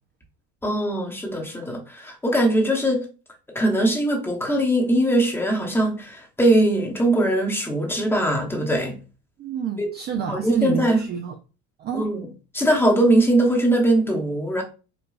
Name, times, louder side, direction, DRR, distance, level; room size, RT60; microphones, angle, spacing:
voice 1, 0.6-3.1 3.5-9.0 9.8-9.9 10.3-11.0 11.9-12.3 12.5-14.6, right 1 dB, 5° left, 0.9 m, -21 dB
voice 2, 9.4-11.4 11.8-12.1, right 8 dB, 30° right, 0.4 m, -28 dB
4.9 x 2.2 x 2.4 m
supercardioid pair, 115°, 33 cm